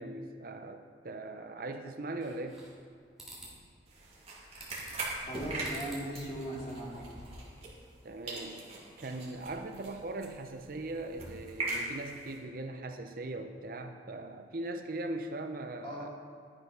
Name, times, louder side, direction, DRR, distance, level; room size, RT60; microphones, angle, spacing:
voice 1, 0.0-2.6 8.0-8.6 9.0-16.1, right 2 dB, 50° right, 6 dB, 0.6 m, -40 dB
sound 1, 2.2-2.9 3.2-3.5 4.6-5.1 5.6-6.1 6.4-7.5, right 1 dB, ahead, 2.9 m, -50 dB
sound 2, 3.9-8.0 8.3-12.4, right 2 dB, 30° right, 2.4 m, -41 dB
voice 2, 5.3-7.1 15.8-16.1, right 1 dB, 30° left, -4 dB, 2.5 m, -38 dB
11.5 x 8.0 x 5.6 m, 2.4 s
head